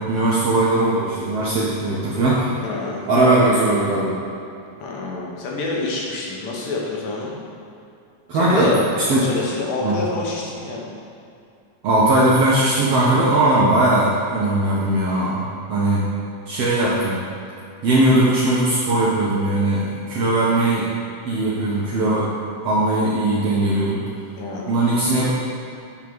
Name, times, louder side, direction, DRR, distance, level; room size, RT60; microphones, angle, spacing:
voice 1, 0.0-2.5 3.1-4.2 8.3-9.3 9.8-9.9 11.8-15.4 15.7-16.1 16.5-17.2 17.8-20.9 21.2-22.3 22.6-24.0 24.7-25.3, right 2 dB, 70° right, -6 dB, 1.5 m, -19 dB
voice 2, 2.6-3.0 4.8-7.3 8.3-8.8 9.1-10.9 24.4-24.7, left 3 dB, 90° left, -3 dB, 2.8 m, -27 dB
8.1 x 3.7 x 6.0 m, 2.6 s
omnidirectional pair, 3.8 m